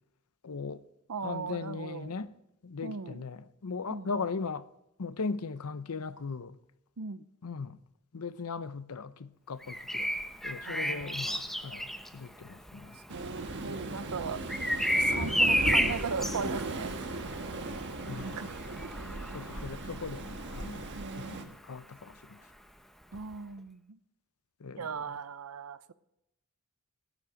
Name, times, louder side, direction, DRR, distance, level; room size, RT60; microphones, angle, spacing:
voice 1, 0.4-0.8 1.2-2.3 2.6-4.7 5.0-6.6 7.4-7.8 8.1-10.1 10.4-13.0 18.1-18.5 19.3-20.9 21.2-22.4 24.6-25.2, left 4 dB, 75° left, 0.7 m, -38 dB
voice 2, 1.1-2.1 2.8-3.2 3.9-4.1 7.0-7.2 10.6-11.4 13.1-14.4 14.9-17.2 18.2-18.5 20.9-21.5 23.1-24.0 24.8-25.9, right 5 dB, 70° right, 0.7 m, -38 dB
Bird vocalization bird call bird song, 9.6-21.4 23.1-23.3, equal, ahead, 0.8 m, -33 dB
Waves surf, 13.1-21.4, right 2 dB, 55° right, 1.4 m, -38 dB
13.5 x 12.0 x 4.9 m
head